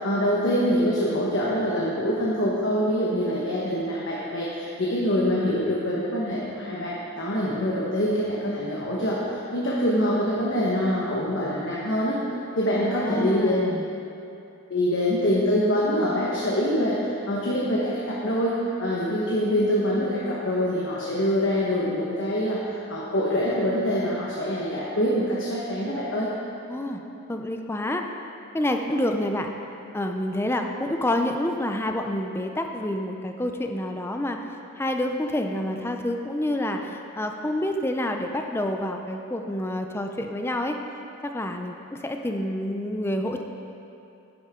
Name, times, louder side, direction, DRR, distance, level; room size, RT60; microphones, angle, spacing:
voice 1, 0.0-12.2 12.5-13.6 14.7-18.5 18.8-26.3, equal, 60° left, -6 dB, 1.3 m, -25 dB
voice 2, 12.7-13.9 26.7-27.0 27.3-28.0 28.5-29.5 29.9-34.4 34.8-40.8 41.2-43.4, left 1 dB, 10° left, 4 dB, 0.4 m, -28 dB
10.5 x 10.5 x 3.7 m, 2.7 s
head